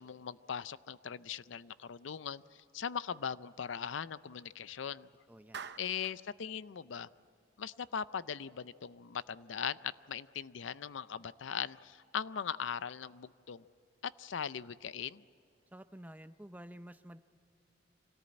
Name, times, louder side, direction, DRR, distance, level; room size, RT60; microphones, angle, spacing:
voice 1, 0.0-5.1 5.8-7.1 7.6-13.6 14.0-15.2, left 7 dB, 80° left, 17 dB, 0.5 m, -40 dB
voice 2, 5.3-5.7 15.7-17.2, right 1 dB, 10° right, 11 dB, 0.6 m, -50 dB
Clapping, 5.5-6.2, right 6 dB, 60° right, 0.8 m, -45 dB
25.5 x 18.0 x 8.7 m, 2.6 s
head